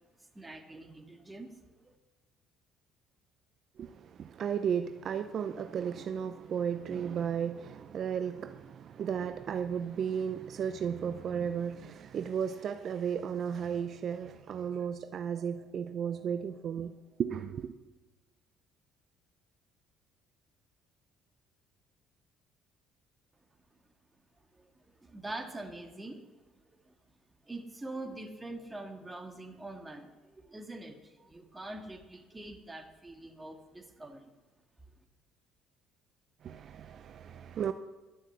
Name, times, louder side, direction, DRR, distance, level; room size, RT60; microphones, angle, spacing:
voice 1, 0.2-2.0 23.7-23.8 24.5-26.5 26.8-26.9 27.4-34.3, right 2 dB, 15° right, 1.9 m, -45 dB
voice 2, 3.8-16.9 17.2-17.7 36.4-37.7, right 7 dB, 55° right, 0.6 m, -34 dB
12.0 x 7.5 x 7.9 m
hypercardioid pair, 65°, 0 cm